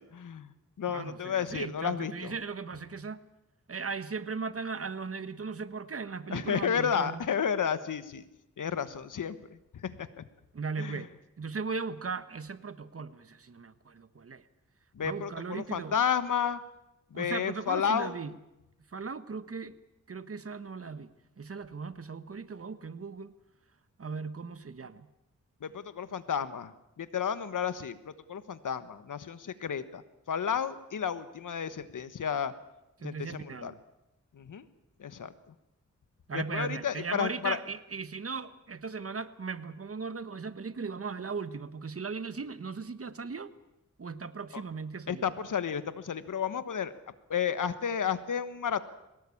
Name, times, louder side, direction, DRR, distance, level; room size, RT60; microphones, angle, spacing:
voice 1, 0.1-2.3 6.3-8.2 8.6-10.2 10.8-11.0 14.9-16.6 17.1-18.1 25.6-26.7 27.0-30.0 30.3-32.5 33.0-33.7 34.3-34.6 35.0-35.3 36.3-37.6 44.5-44.6 45.1-46.9 47.3-48.8, left 7 dB, 90° left, 13 dB, 1.3 m, -32 dB
voice 2, 0.9-3.2 3.7-7.2 10.5-11.1 11.4-14.4 15.0-16.0 17.1-18.3 18.9-19.7 20.1-23.3 24.0-25.1 33.0-33.8 36.3-43.5 44.0-45.2, right 4 dB, 50° right, 13 dB, 1.3 m, -37 dB
22.5 x 18.5 x 8.6 m, 0.91 s
wide cardioid pair, 70°, 31 cm